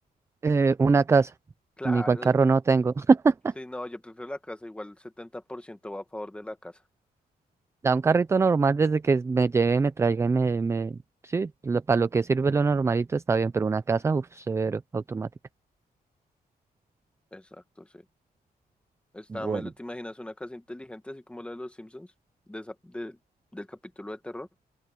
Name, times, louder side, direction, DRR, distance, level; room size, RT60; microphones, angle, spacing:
voice 1, 0.4-1.3 1.8-3.5 7.8-11.0 11.2-15.3 19.3-19.6, right 4 dB, 15° right, 0.3 m, -23 dB
voice 2, 1.8-2.3 3.6-6.8 17.3-18.0 19.1-22.1 22.5-23.2 23.5-24.5, left 1 dB, 5° left, 1.3 m, -39 dB
open air
wide cardioid pair, 175°, 16 cm